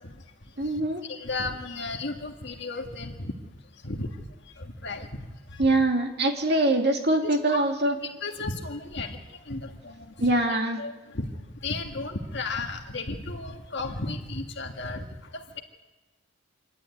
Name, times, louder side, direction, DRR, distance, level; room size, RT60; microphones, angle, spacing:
voice 1, 0.6-1.0 5.6-8.0 10.2-10.8, right 2 dB, 50° right, 3 dB, 2.5 m, -23 dB
voice 2, 1.1-3.3 3.8-4.1 4.6-5.1 5.5-5.7 7.2-7.6 8.2-10.3 10.8-11.3 11.6-15.1, left 3 dB, 55° left, 2 dB, 1.8 m, -34 dB
27.0 x 12.0 x 9.5 m, 1.2 s
head